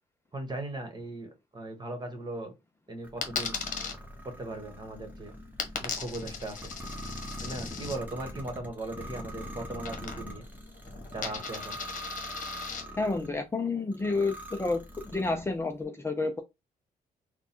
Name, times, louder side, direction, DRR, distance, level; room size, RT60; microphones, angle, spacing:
voice 1, 0.3-2.5 2.9-3.6 4.2-5.3 5.8-6.7 7.4-10.4 11.1-11.8, right 2 dB, 25° right, 1.5 m, -38 dB
sound 1, 3.0-13.3 13.9-15.6, equal, 10° right, 1.2 m, -43 dB
Coin (dropping), 3.2-3.9 5.6-8.0 9.8-10.5 10.7-12.8, left 6 dB, 50° left, 1.1 m, -37 dB
voice 2, 13.0-14.8 15.1-16.4, left 3 dB, 15° left, 0.6 m, -30 dB
3.8 x 2.3 x 4.3 m
cardioid pair, 110°, 17 cm